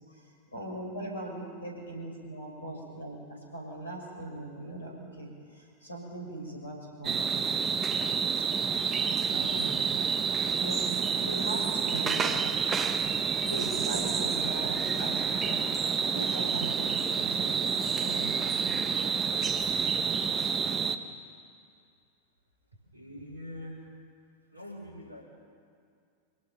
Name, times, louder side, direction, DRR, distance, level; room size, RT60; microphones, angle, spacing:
voice 1, 0.5-7.3 8.8-8.9 9.3-9.8 10.5-10.9 11.1-12.3 13.4-15.7 16.0-17.7 18.0-18.8, right 1 dB, 75° left, 0 dB, 6.0 m, -40 dB
sound 1, 7.0-21.0, right 6 dB, 20° right, 1.1 m, -29 dB
voice 2, 22.8-23.8 24.5-25.2, left 1 dB, 80° right, 1 dB, 4.7 m, -45 dB
25.0 x 18.0 x 6.0 m, 2.4 s
figure-of-eight pair, 90°, 0 cm